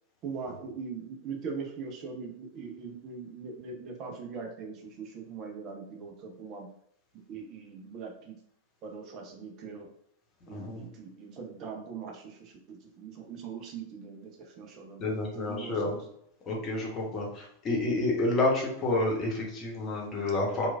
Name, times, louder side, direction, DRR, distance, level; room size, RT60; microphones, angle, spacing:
voice 1, 0.2-6.7 7.3-8.4 8.8-9.9 10.5-16.0, right 5 dB, 35° right, 2 dB, 0.4 m, -41 dB
voice 2, 10.5-10.9 15.0-15.9 16.5-20.7, left 2 dB, 30° left, -2 dB, 0.9 m, -29 dB
3.0 x 2.3 x 2.3 m, 0.72 s
figure-of-eight pair, 90°, 0 cm